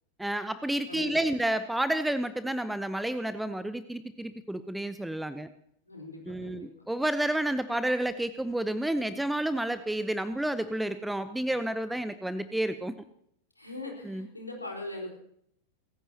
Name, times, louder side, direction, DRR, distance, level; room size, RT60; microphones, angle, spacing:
voice 1, 0.2-5.5 6.3-12.9 14.0-14.3, right 1 dB, 5° right, 13 dB, 0.8 m, -30 dB
voice 2, 0.9-1.2 5.8-6.7 13.6-15.1, left 2 dB, 85° left, 0 dB, 4.5 m, -40 dB
29.0 x 15.0 x 2.9 m, 0.71 s
figure-of-eight pair, 90°, 0 cm